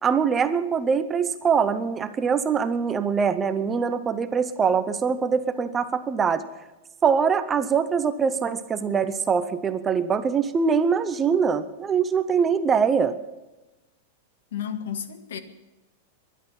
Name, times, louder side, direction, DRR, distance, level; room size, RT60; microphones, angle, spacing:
voice 1, 0.0-6.4 7.0-13.2, right 6 dB, 10° right, 11 dB, 0.6 m, -23 dB
voice 2, 14.5-15.4, left 9 dB, 90° left, 8 dB, 1.8 m, -32 dB
22.5 x 11.0 x 5.8 m, 1.1 s
supercardioid pair, 180°, 0 cm